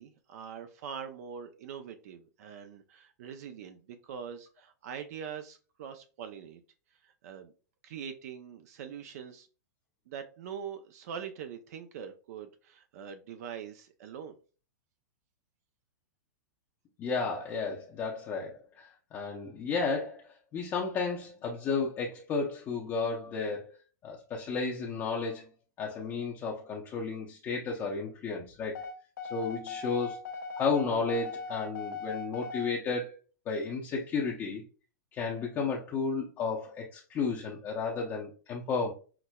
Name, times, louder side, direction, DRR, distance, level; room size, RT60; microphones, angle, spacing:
voice 1, 0.0-6.6 7.0-7.5 7.8-9.5 10.1-14.3, right 7 dB, 60° right, 8 dB, 0.5 m, -43 dB
voice 2, 17.0-23.6 24.0-25.5 25.8-28.8 29.3-30.2 30.6-33.2 33.5-34.6 35.1-38.9, left 4 dB, 25° left, -2 dB, 0.6 m, -33 dB
sound 1, 28.7-32.7, left 5 dB, 85° left, 0.9 m, -39 dB
5.8 x 2.1 x 2.2 m, 0.36 s
hypercardioid pair, 135°, 10 cm